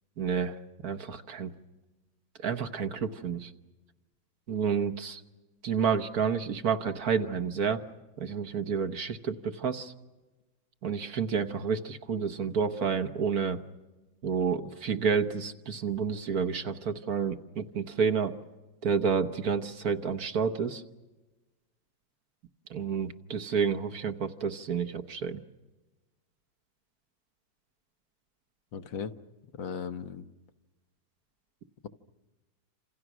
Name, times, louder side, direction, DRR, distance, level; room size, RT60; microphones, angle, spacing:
voice 1, 0.2-0.6 0.8-1.5 2.4-3.5 4.5-5.2 5.6-7.8 8.2-9.9 10.8-13.6 14.2-18.3 18.8-20.8 22.7-25.4, right 6 dB, 55° right, 9 dB, 1.5 m, -29 dB
voice 2, 28.7-29.1 29.5-30.2, left 6 dB, 80° left, 9 dB, 1.8 m, -36 dB
29.5 x 27.0 x 6.2 m, 1.1 s
omnidirectional pair, 2.1 m